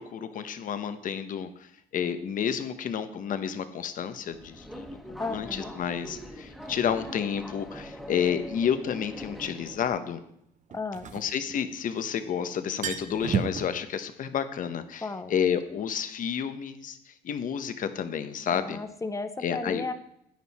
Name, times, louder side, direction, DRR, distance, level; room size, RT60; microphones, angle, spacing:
voice 1, 0.0-10.2 11.1-18.8 19.4-19.8, left 8 dB, 50° left, 10 dB, 1.1 m, -30 dB
Subway metro underground, 4.2-9.9, equal, ahead, 1.6 m, -43 dB
voice 2, 5.2-5.7 10.7-11.1 15.0-15.3 18.5-19.9, left 3 dB, 20° left, 10 dB, 0.7 m, -34 dB
sound 1, 8.3-8.4 10.7-12.0 12.3-12.4 12.6-13.7, right 7 dB, 50° right, 1.0 m, -32 dB
10.5 x 9.3 x 4.2 m, 0.73 s
cardioid pair, 110°, 17 cm